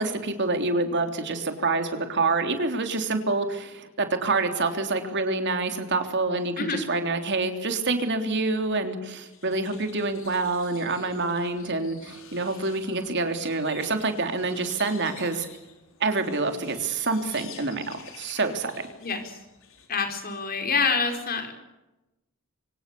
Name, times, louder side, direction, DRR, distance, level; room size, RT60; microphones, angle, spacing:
voice 1, 0.0-15.5 16.0-17.8 18.2-18.7, right 3 dB, 55° right, 6 dB, 3.4 m, -27 dB
sound 1, 9.2-19.9, left 7 dB, 65° left, 4.7 m, -49 dB
voice 2, 19.0-19.4 19.9-21.6, left 4 dB, 45° left, 5 dB, 4.7 m, -27 dB
25.0 x 25.0 x 7.0 m, 1.0 s
head